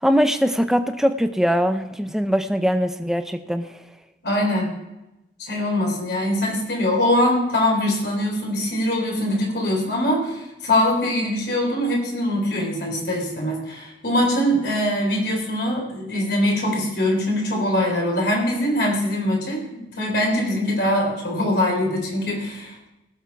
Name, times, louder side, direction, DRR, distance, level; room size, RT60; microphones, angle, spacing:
voice 1, 0.0-3.7, equal, 5° right, 8 dB, 0.7 m, -21 dB
voice 2, 4.2-4.7 5.4-22.9, left 1 dB, 65° left, -1 dB, 3.8 m, -22 dB
18.5 x 7.2 x 4.6 m, 0.96 s
head